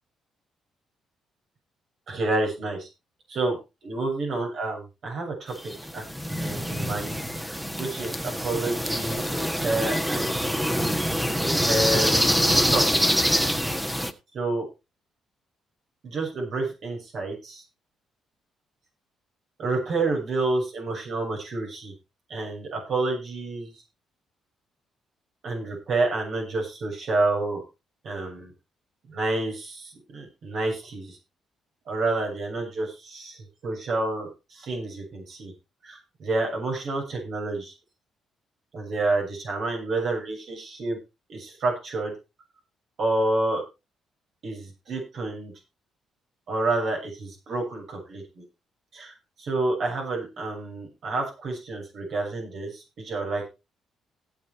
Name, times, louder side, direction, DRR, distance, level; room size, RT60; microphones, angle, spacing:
voice 1, 2.1-2.9 3.3-3.6 3.8-6.0 6.4-10.4 11.4-13.2 14.3-14.6 16.0-17.6 19.6-21.9 22.3-23.7 25.4-27.6 28.0-28.5 29.1-31.2 31.9-35.5 35.8-37.7 38.7-41.0 41.3-42.1 43.0-43.6 44.4-45.5 46.5-48.4 48.9-49.1 49.4-53.5, right 2 dB, 60° right, 1 dB, 6.6 m, -29 dB
sound 1, 5.6-14.1, equal, 5° right, 1.5 m, -25 dB
17.0 x 6.3 x 4.7 m, 0.28 s
cardioid pair, 90°, 0 cm